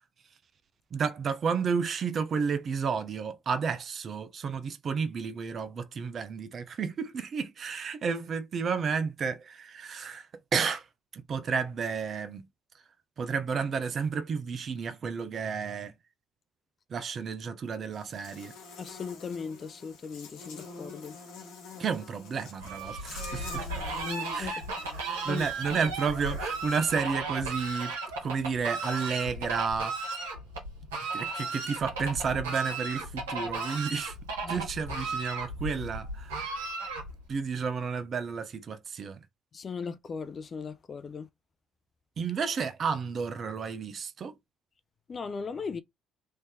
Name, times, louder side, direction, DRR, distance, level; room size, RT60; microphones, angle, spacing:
voice 1, 0.9-10.9 11.1-12.5 13.2-15.9 16.9-18.5 21.8-23.7 24.3-24.6 25.0-27.9 28.2-30.0 31.1-34.1 34.5-36.6 37.3-39.2 42.2-44.3, right 5 dB, 50° right, 0.6 m, -31 dB
Buzz, 17.9-27.0, left 3 dB, 75° left, 1.4 m, -45 dB
voice 2, 18.8-21.2 24.4-24.7 25.3-25.4 25.7-25.8 34.4-34.6 39.5-41.3 45.1-45.8, left 5 dB, 45° left, 0.6 m, -38 dB
Fowl, 22.6-37.3, right 3 dB, 90° right, 1.2 m, -35 dB
3.3 x 2.8 x 3.4 m
hypercardioid pair, 55°, 0 cm